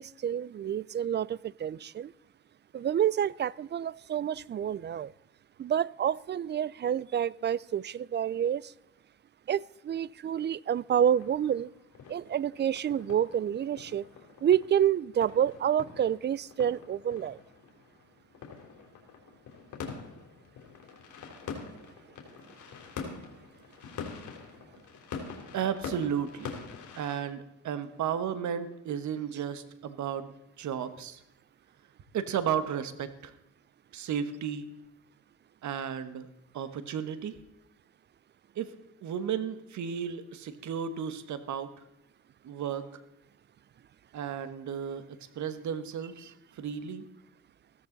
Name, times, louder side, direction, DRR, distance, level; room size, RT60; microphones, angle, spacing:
voice 1, 0.0-2.1 2.7-5.1 5.6-8.7 9.5-11.7 12.1-14.1 14.4-17.4, right 9 dB, 35° right, 0.4 m, -28 dB
sound 1, 10.9-27.2, left 5 dB, 80° left, 3.1 m, -45 dB
voice 2, 25.5-26.6 27.0-31.2 32.1-33.3 33.9-34.7 35.6-36.3 36.5-37.4 38.5-38.7 39.0-41.7 42.4-42.9 44.1-47.1, right 8 dB, 70° right, 1.4 m, -34 dB
15.5 x 13.5 x 4.0 m
cardioid pair, 90°, 30 cm